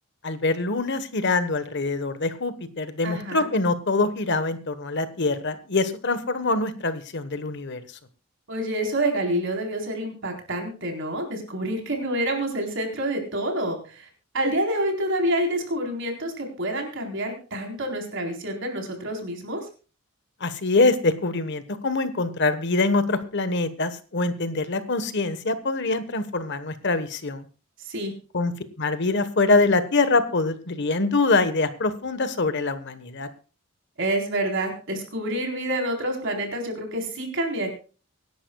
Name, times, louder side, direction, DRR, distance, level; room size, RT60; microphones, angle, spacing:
voice 1, 0.2-7.8 20.4-27.4 28.3-28.5 28.8-33.3, left 3 dB, 55° left, 12 dB, 1.2 m, -24 dB
voice 2, 3.0-3.5 8.5-14.1 14.3-19.7 27.8-28.1 34.0-37.7, right 1 dB, 55° right, 2 dB, 4.1 m, -28 dB
24.5 x 11.0 x 2.4 m, 0.36 s
head